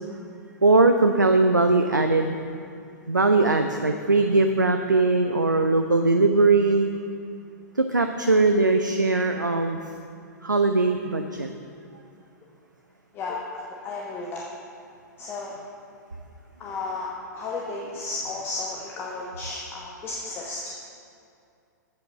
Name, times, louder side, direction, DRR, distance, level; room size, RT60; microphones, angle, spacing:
voice 1, 0.6-2.3 3.1-6.9 7.8-9.8 10.4-11.5, right 3 dB, 85° right, 6 dB, 0.5 m, -20 dB
voice 2, 13.1-14.4 15.2-15.5 16.6-20.7, left 3 dB, 25° left, -3 dB, 1.0 m, -33 dB
8.4 x 7.6 x 5.8 m, 2.5 s
figure-of-eight pair, 105°, 10 cm